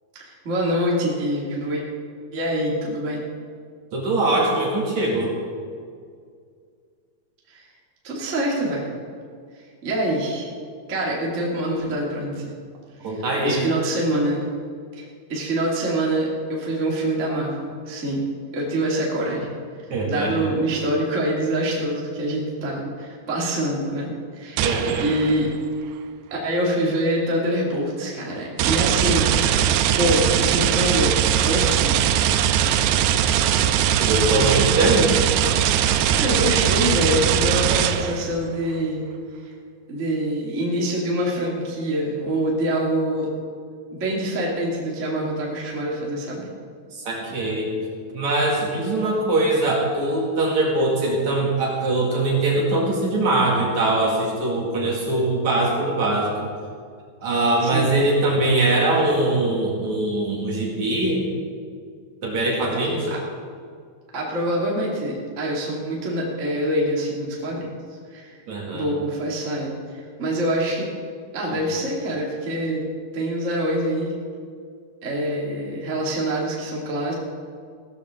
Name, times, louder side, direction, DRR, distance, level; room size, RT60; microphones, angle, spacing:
voice 1, 0.2-1.8 2.3-3.2 7.5-7.6 8.0-8.9 9.8-10.5 10.9-12.5 13.0-14.4 14.9-18.2 18.5-19.5 20.0-24.7 25.0-25.5 26.3-29.3 29.9-32.0 36.1-39.0 39.4-39.5 39.9-43.3 43.9-46.5 57.6-57.9 63.1-63.2 64.1-67.7 68.1-68.3 68.7-70.9 71.3-74.1 75.0-77.1, right 1 dB, 25° right, -4 dB, 1.8 m, -25 dB
voice 2, 3.9-5.3 13.0-13.7 19.9-20.5 24.6-25.0 34.0-35.1 46.9-47.7 48.1-56.3 57.2-61.2 62.2-63.1 68.5-68.9, right 2 dB, 50° right, -3 dB, 3.1 m, -22 dB
sound 1, 24.6-25.5 28.6-38.3, right 10 dB, 90° right, 2.7 m, -20 dB
16.5 x 14.0 x 3.7 m, 2.1 s
omnidirectional pair, 4.6 m